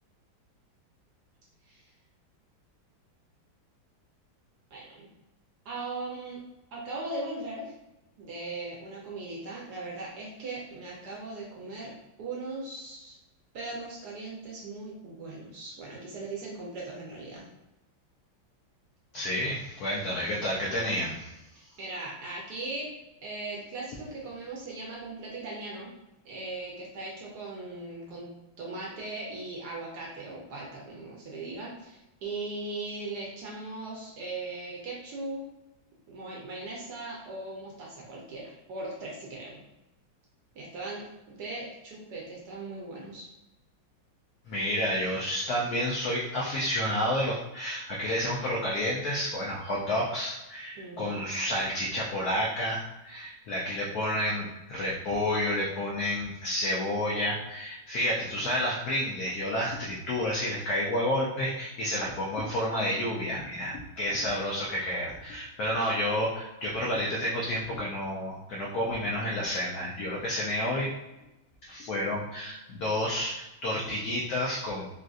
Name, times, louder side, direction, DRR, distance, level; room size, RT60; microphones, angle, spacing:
voice 1, 4.7-5.1 5.6-6.4 6.7-7.7 8.2-11.9 12.2-13.2 13.5-17.5 21.5-22.9 23.2-25.9 26.2-28.3 28.6-35.4 36.1-39.6 40.5-43.3 50.8-51.2 64.2-64.3, right 2 dB, 70° right, -3 dB, 1.0 m, -39 dB
voice 2, 19.1-21.3 44.5-70.9 71.6-74.9, left 1 dB, 90° left, -3 dB, 0.8 m, -30 dB
3.8 x 2.5 x 2.3 m, 0.97 s
omnidirectional pair, 2.2 m